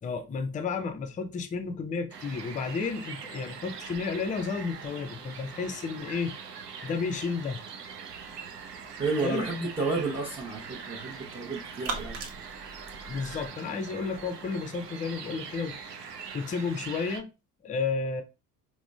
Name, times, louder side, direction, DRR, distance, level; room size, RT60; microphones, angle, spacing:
voice 1, 0.0-6.3 6.8-7.6 9.2-9.5 13.1-16.1 16.3-17.3 17.6-18.2, left 5 dB, 15° left, 0.5 m, -32 dB
sound 1, 2.1-17.2, right 6 dB, 85° right, 0.5 m, -42 dB
sound 2, 8.1-13.5, right 3 dB, 60° right, 0.9 m, -43 dB
voice 2, 9.0-12.2, right 3 dB, 10° right, 0.8 m, -31 dB
4.8 x 2.1 x 2.3 m
figure-of-eight pair, 55°, 46 cm